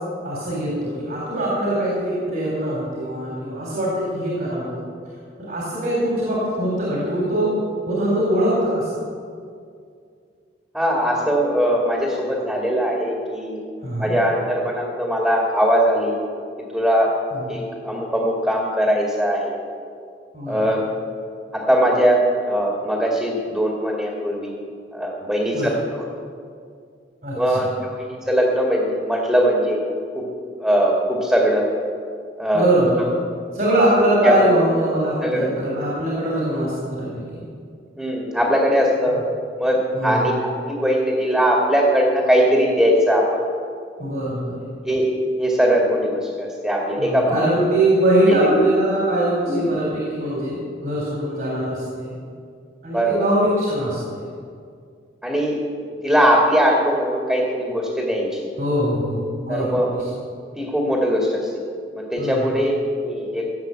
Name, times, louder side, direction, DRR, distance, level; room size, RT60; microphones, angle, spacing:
voice 1, 0.2-4.8 5.4-7.5 7.9-8.9 13.8-14.1 17.3-17.5 20.3-20.6 25.5-25.7 27.2-27.4 32.5-33.0 33.5-37.5 39.9-40.3 44.0-44.6 47.0-52.1 52.8-54.2 58.6-60.1 62.2-62.5, right 1 dB, 50° right, -5 dB, 3.6 m, -22 dB
voice 2, 10.7-13.6 14.0-16.1 16.7-17.1 17.5-19.5 20.5-20.8 21.5-22.2 22.4-24.6 24.9-26.0 27.3-29.8 30.1-30.3 30.6-31.7 32.4-32.7 34.2-34.5 35.2-35.5 38.0-39.1 39.6-40.3 40.7-43.4 44.9-45.1 45.4-47.7 48.3-48.6 49.5-49.6 52.9-53.2 55.2-55.6 56.0-58.5 59.5-59.9 60.6-61.4 61.9-63.5, equal, 5° right, -2 dB, 2.1 m, -20 dB
16.0 x 8.2 x 7.7 m, 2.2 s
head